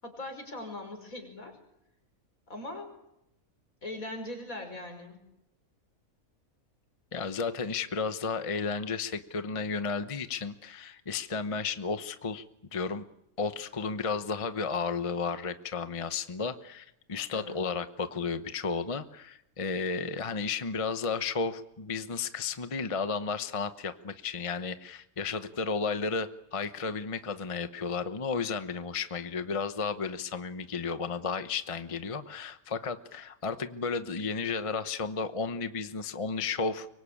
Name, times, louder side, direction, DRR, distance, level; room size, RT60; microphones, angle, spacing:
voice 1, 0.0-1.6 2.5-2.9 3.8-5.3 17.3-17.6, left 1 dB, 70° left, 5 dB, 6.0 m, -40 dB
voice 2, 7.1-12.4 12.7-13.0 13.4-36.9, left 4 dB, 25° left, 10 dB, 0.9 m, -33 dB
24.5 x 23.5 x 8.6 m, 0.84 s
omnidirectional pair, 1.5 m